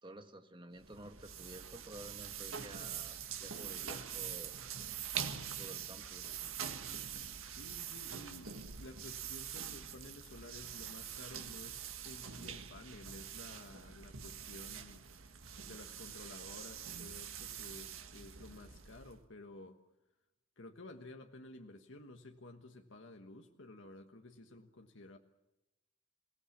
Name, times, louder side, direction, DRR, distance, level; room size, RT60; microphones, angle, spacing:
voice 1, 0.0-4.5 5.6-6.3, right 1 dB, 25° right, 6 dB, 1.7 m, -52 dB
sound 1, 0.8-19.2, right 8 dB, 85° right, 1.7 m, -44 dB
voice 2, 7.4-15.1 15.6-19.8 20.6-25.2, left 2 dB, 65° left, 4 dB, 1.4 m, -53 dB
28.0 x 17.5 x 7.3 m, 0.99 s
head